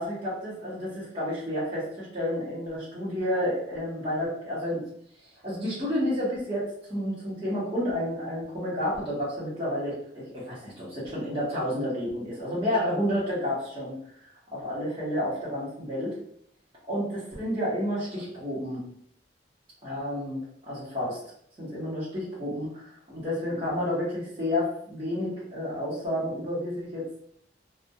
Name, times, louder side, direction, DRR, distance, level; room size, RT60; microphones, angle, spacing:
voice 1, 0.0-4.8 5.4-13.9 14.5-16.1 16.9-18.8 19.8-21.2 21.6-27.2, left 1 dB, 25° right, -9 dB, 0.8 m, -30 dB
2.7 x 2.1 x 2.2 m, 0.66 s
head